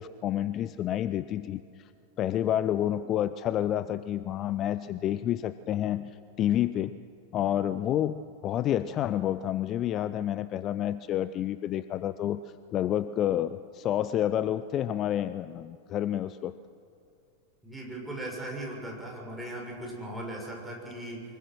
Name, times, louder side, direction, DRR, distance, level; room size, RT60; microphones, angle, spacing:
voice 1, 0.0-1.9 2.2-6.9 7.3-12.4 12.7-16.5, left 11 dB, 30° left, 15 dB, 0.5 m, -29 dB
voice 2, 17.6-21.2, right 1 dB, 5° right, -2 dB, 6.4 m, -38 dB
24.0 x 21.0 x 6.2 m, 2.5 s
figure-of-eight pair, 90°, 0 cm